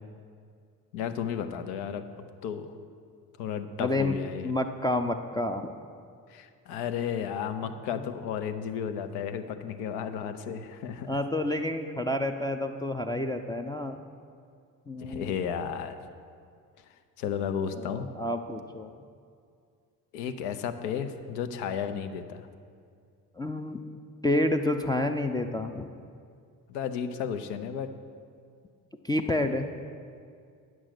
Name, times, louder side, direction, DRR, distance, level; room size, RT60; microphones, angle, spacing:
voice 1, 0.9-2.1 2.4-2.7 3.4-4.5 6.3-11.1 15.0-16.0 17.2-18.1 20.1-22.5 26.7-27.9, left 8 dB, 70° left, 9 dB, 0.7 m, -33 dB
voice 2, 3.8-4.1 4.4-5.7 11.1-14.0 14.9-15.3 17.7-18.9 23.4-23.8 24.2-25.9 29.0-29.7, left 1 dB, 10° left, 3 dB, 0.4 m, -29 dB
9.2 x 6.2 x 5.9 m, 2.3 s
figure-of-eight pair, 45°, 48 cm